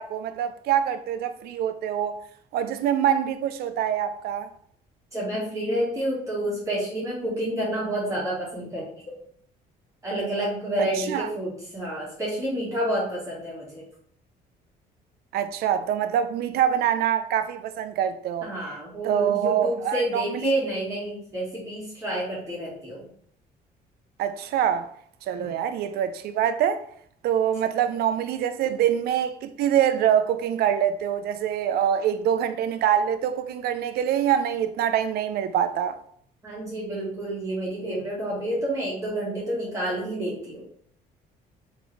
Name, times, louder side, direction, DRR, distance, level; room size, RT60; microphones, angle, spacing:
voice 1, 0.0-2.2 2.5-4.5 10.8-11.3 15.3-18.5 19.0-20.5 24.2-24.9 25.3-26.8 27.2-36.0, right 9 dB, 70° right, 0.5 m, -25 dB
voice 2, 5.1-8.8 10.0-13.8 18.4-23.1 25.4-25.5 36.4-40.6, right 1 dB, 20° right, 1.8 m, -29 dB
3.6 x 3.5 x 3.3 m
cardioid pair, 110°, 17 cm